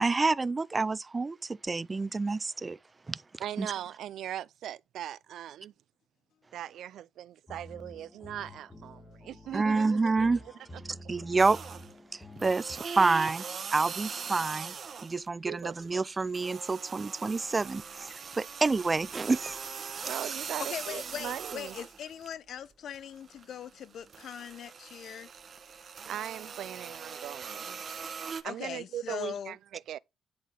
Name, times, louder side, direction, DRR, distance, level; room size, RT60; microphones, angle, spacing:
voice 1, 0.0-2.8 3.1-3.2 3.6-3.7 9.5-10.4 11.1-11.6 12.1-13.4 13.7-14.7 15.0-19.6, right 3 dB, 25° right, 0.5 m, -28 dB
voice 2, 3.4-5.7 6.5-10.1 15.4-15.8 20.0-21.8 26.1-27.8 28.4-30.0, right 11 dB, 75° right, 0.6 m, -39 dB
sound 1, 7.5-12.8, equal, 15° left, 1.8 m, -49 dB
sound 2, 11.4-12.0 12.4-15.3 15.6-22.3 22.7-28.4, right 6 dB, 45° right, 1.3 m, -41 dB
voice 3, 20.6-25.3 28.4-29.6, left 9 dB, 65° left, 0.9 m, -40 dB
11.0 x 3.8 x 7.6 m
cardioid pair, 115°, 0 cm